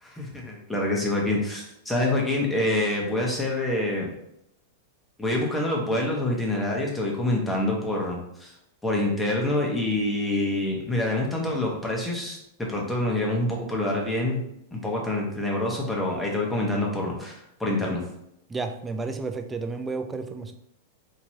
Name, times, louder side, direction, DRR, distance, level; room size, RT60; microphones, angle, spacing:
voice 1, 0.0-4.1 5.2-8.5 8.8-12.4 12.7-14.4 14.7-18.0, left 1 dB, 5° left, -2 dB, 1.0 m, -26 dB
voice 2, 18.5-20.5, right 4 dB, 15° right, 6 dB, 0.4 m, -31 dB
4.5 x 2.9 x 2.8 m, 0.77 s
supercardioid pair, 135°, 0 cm